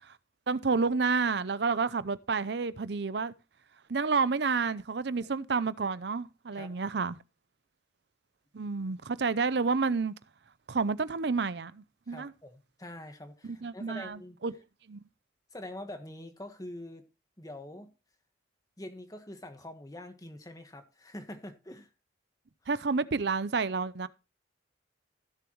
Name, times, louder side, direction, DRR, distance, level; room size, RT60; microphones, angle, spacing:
voice 1, 0.5-3.3 3.9-7.2 8.5-10.1 10.7-12.3 13.4-14.5 14.9-15.0 22.7-24.1, right 4 dB, 60° right, 0.6 m, -30 dB
voice 2, 12.1-14.4 15.5-17.1 17.4-17.9 18.8-21.9, left 1 dB, 20° left, 1.4 m, -45 dB
16.0 x 7.1 x 3.0 m
head